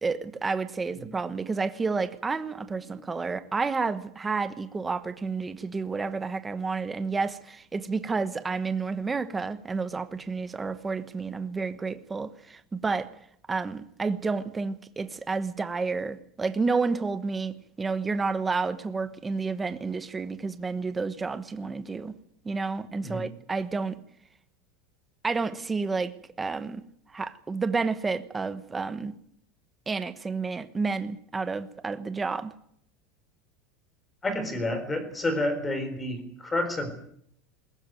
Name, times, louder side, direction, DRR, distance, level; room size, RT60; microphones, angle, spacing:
voice 1, 0.0-13.1 13.5-22.1 22.4-24.0 25.2-26.1 26.4-26.8 27.1-29.1 29.9-32.5, right 4 dB, 10° right, 1.1 m, -30 dB
voice 2, 34.2-36.9, left 1 dB, 10° left, 4.0 m, -30 dB
21.5 x 18.0 x 9.2 m
supercardioid pair, 170°, 0 cm